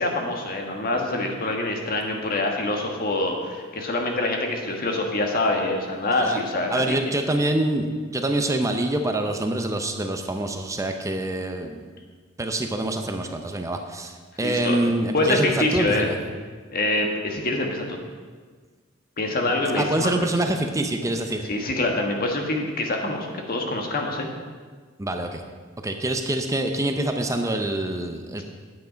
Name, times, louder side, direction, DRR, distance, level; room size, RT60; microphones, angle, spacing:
voice 1, 0.0-7.0 14.4-14.8 15.1-16.1 16.7-18.0 19.2-20.1 21.5-24.3, left 2 dB, 45° left, 2 dB, 1.4 m, -25 dB
voice 2, 6.7-11.9 12.4-16.2 19.8-21.5 25.0-25.4 25.8-28.4, right 1 dB, 15° right, 5 dB, 0.6 m, -26 dB
9.4 x 8.0 x 5.1 m, 1.5 s
head